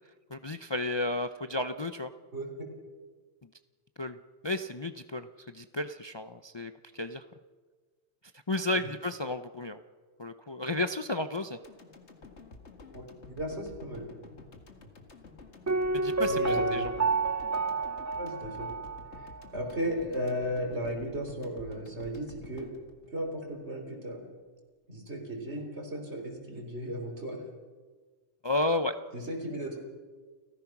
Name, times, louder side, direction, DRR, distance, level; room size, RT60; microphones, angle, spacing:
voice 1, 0.3-2.1 4.0-4.2 4.4-7.2 8.5-9.8 10.2-11.6 16.0-16.9 28.4-29.0, left 2 dB, 35° left, 9 dB, 0.5 m, -32 dB
voice 2, 2.3-2.7 12.9-14.1 16.2-16.9 18.1-18.7 19.1-19.3 19.5-22.7 23.1-24.2 24.9-27.4 29.1-29.8, equal, 70° right, 3 dB, 3.9 m, -35 dB
sound 1, 11.6-23.9 24.2-24.3, left 3 dB, 75° left, 2.2 m, -51 dB
Piano, 15.7-19.4 19.7-19.8, right 3 dB, 30° right, 0.3 m, -30 dB
29.5 x 15.0 x 6.0 m, 1.4 s
omnidirectional pair, 1.2 m